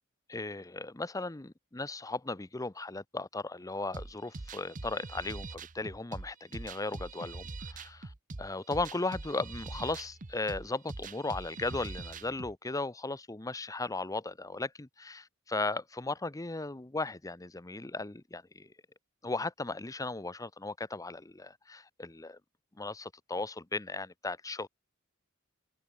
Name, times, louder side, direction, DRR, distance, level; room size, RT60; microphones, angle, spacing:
voice 1, 0.3-8.1 8.4-18.7 19.2-22.4 22.8-24.7, left 3 dB, 15° left, 0.8 m, -36 dB
sound 1, 3.9-12.5, right 3 dB, 40° right, 0.9 m, -43 dB
head